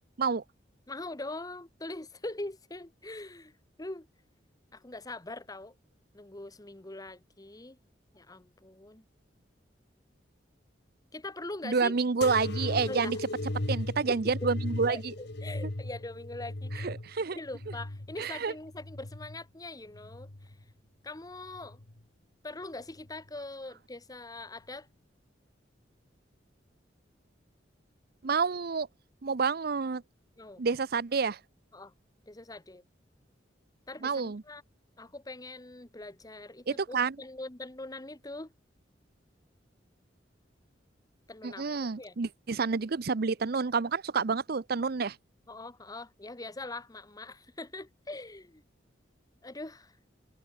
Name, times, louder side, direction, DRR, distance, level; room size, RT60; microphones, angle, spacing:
voice 1, 0.9-3.5 3.8-4.1 4.7-5.7 6.1-7.8 8.1-9.0 11.1-12.0 12.9-13.1 14.1-14.2 14.9-16.9 17.3-20.5 21.0-21.8 22.4-24.9 30.4-30.6 31.7-31.9 32.3-32.8 33.9-34.6 35.0-38.5 41.3-41.6 42.0-42.2 45.5-48.6 49.4-50.0, left 2 dB, 20° left, 1.1 m, -42 dB
voice 2, 11.6-13.2 13.7-15.1 16.8-17.4 18.2-18.5 28.2-28.9 29.2-30.0 30.6-31.4 34.0-34.4 36.7-37.2 41.4-45.2, right 5 dB, 55° right, 0.6 m, -29 dB
sound 1, 12.2-19.4 19.9-20.7 21.5-22.0 23.0-23.1, left 1 dB, 60° left, 1.6 m, -37 dB
head